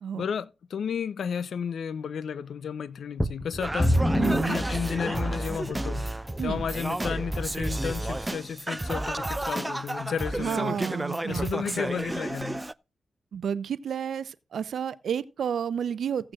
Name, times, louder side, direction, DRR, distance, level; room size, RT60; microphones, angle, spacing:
voice 1, 0.2-4.1 4.4-6.1 6.4-10.8 11.3-12.6, left 7 dB, 80° left, 0.6 m, -32 dB
sound 1, 3.2-5.6 6.3-6.4 7.0-7.1, equal, 10° left, 1.1 m, -27 dB
Singing, 3.6-12.7, right 1 dB, 15° right, 0.5 m, -31 dB
voice 2, 4.2-4.6 6.4-6.6 10.4-11.8 13.3-16.3, right 8 dB, 80° right, 0.6 m, -31 dB
16.0 x 8.7 x 2.4 m
cardioid pair, 55°, 0 cm